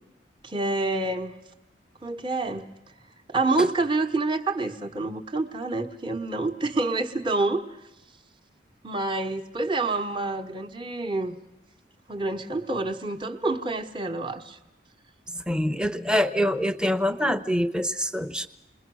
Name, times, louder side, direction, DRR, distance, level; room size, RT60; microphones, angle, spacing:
voice 1, 0.4-1.3 2.0-2.7 3.3-7.8 8.8-11.4 12.1-14.6, right 2 dB, 25° right, 3 dB, 1.2 m, -27 dB
voice 2, 15.5-18.5, equal, 5° right, 11 dB, 0.8 m, -25 dB
28.5 x 21.5 x 6.2 m, 0.95 s
head